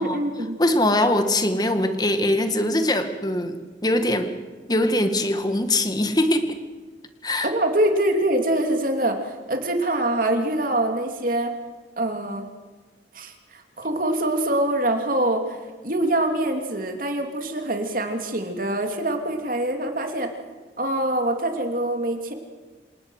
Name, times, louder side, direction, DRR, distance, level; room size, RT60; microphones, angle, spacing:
voice 1, 0.0-0.6 7.4-11.5 12.0-12.4 13.1-20.3 20.8-22.3, right 1 dB, 50° right, 5 dB, 3.0 m, -24 dB
voice 2, 0.6-3.6 3.8-4.3 4.7-6.5 7.2-7.5, left 1 dB, 20° left, 8 dB, 1.8 m, -22 dB
27.5 x 18.5 x 6.5 m, 1.3 s
head